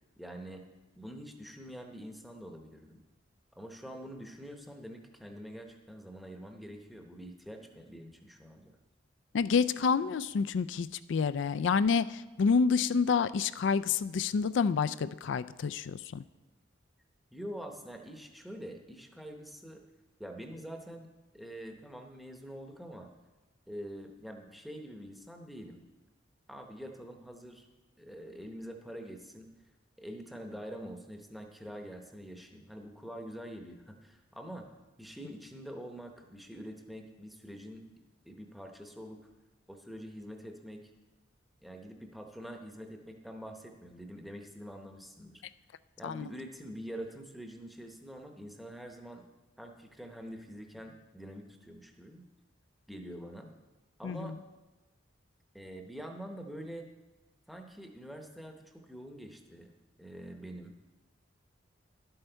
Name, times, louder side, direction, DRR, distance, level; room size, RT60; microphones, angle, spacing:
voice 1, 0.2-0.6 0.9-3.0 3.5-8.8 17.3-19.8 20.2-21.1 21.3-23.1 23.7-25.8 26.5-27.7 28.0-29.5 30.0-34.7 35.0-37.8 38.2-39.2 39.7-40.9 41.6-45.4 46.0-49.2 49.6-52.2 52.9-53.5 54.0-54.4 55.5-56.9 57.5-59.7 60.0-60.7, equal, ahead, 3 dB, 0.8 m, -45 dB
voice 2, 9.3-16.2 46.0-46.2 54.0-54.3, left 5 dB, 65° left, 15 dB, 0.3 m, -28 dB
11.5 x 7.8 x 4.5 m, 1.1 s
head